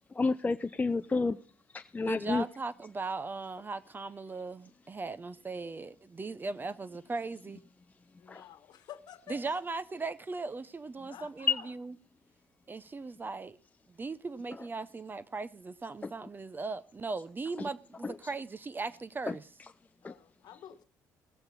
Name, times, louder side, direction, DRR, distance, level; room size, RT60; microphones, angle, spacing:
voice 1, 0.1-1.4 1.7-2.4 8.3-8.5 11.5-11.6 16.0-16.1 17.6-17.7 18.0-18.3 19.3-19.4 20.0-20.1, left 4 dB, 20° left, 0.5 m, -30 dB
voice 2, 2.1-7.6 9.3-11.9 12.7-13.6 13.9-19.4, right 3 dB, 25° right, 0.7 m, -38 dB
voice 3, 8.2-9.6 11.1-11.7 20.0-20.8, left 11 dB, 65° left, 1.3 m, -50 dB
19.0 x 8.0 x 4.1 m
supercardioid pair, 75°, 8 cm